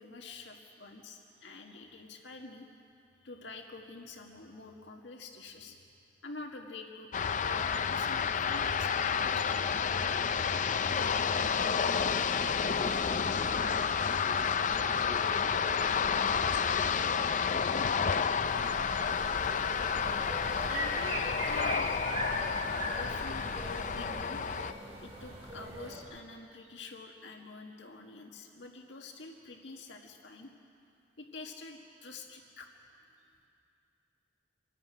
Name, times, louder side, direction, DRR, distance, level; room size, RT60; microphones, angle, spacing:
voice 1, 0.0-2.7 3.2-5.8 6.2-7.1 7.4-9.5 20.7-21.9 22.8-24.5 25.0-30.6 31.2-32.7, left 3 dB, 85° left, 2 dB, 1.8 m, -47 dB
sound 1, 7.1-24.7, left 6 dB, 45° left, 0.5 m, -30 dB
voice 2, 12.2-13.4 14.0-17.3, left 1 dB, 10° right, -4 dB, 4.7 m, -51 dB
sound 2, 18.4-24.0, equal, 30° left, 4.7 m, -45 dB
sound 3, 20.0-26.0, equal, 35° right, 4.5 m, -39 dB
26.5 x 11.0 x 9.0 m, 2.4 s
head